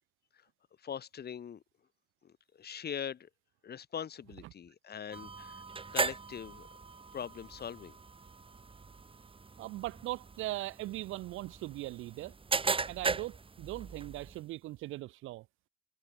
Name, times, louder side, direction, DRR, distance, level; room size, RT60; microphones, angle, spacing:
voice 1, 0.8-1.6 2.2-3.3 3.6-5.6 5.9-6.7 7.1-8.0, left 8 dB, 55° left, 2.9 m, -42 dB
sound 1, 5.1-14.4, right 4 dB, 25° right, 1.8 m, -38 dB
voice 2, 9.6-12.3 12.9-15.5, right 17 dB, 90° right, 1.0 m, -40 dB
cardioid pair, 90°, 20 cm